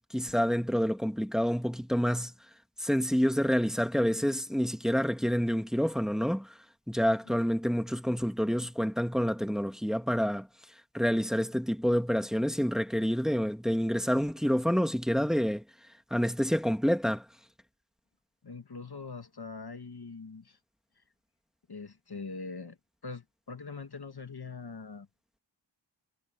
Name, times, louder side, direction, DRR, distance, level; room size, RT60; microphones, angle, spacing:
voice 1, 0.1-2.3 2.8-6.5 6.9-10.5 10.9-15.6 16.1-17.3, equal, ahead, 2.1 m, -28 dB
voice 2, 18.4-20.6 21.7-22.8 23.0-25.1, left 4 dB, 55° left, 1.6 m, -42 dB
wide cardioid pair, 45°, 46 cm